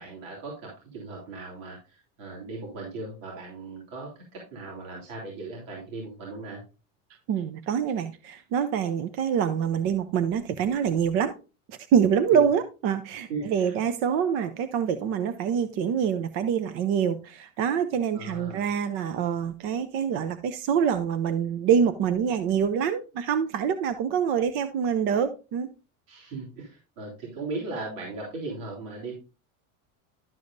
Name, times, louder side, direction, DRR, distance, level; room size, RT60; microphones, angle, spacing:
voice 1, 0.0-6.6 12.3-12.5 13.3-13.8 18.1-18.7 26.1-29.1, right 3 dB, 75° right, 3.4 m, -38 dB
voice 2, 7.3-11.3 11.7-25.7, right 7 dB, 35° right, 0.5 m, -25 dB
12.0 x 6.9 x 2.5 m
cardioid pair, 175°, 39 cm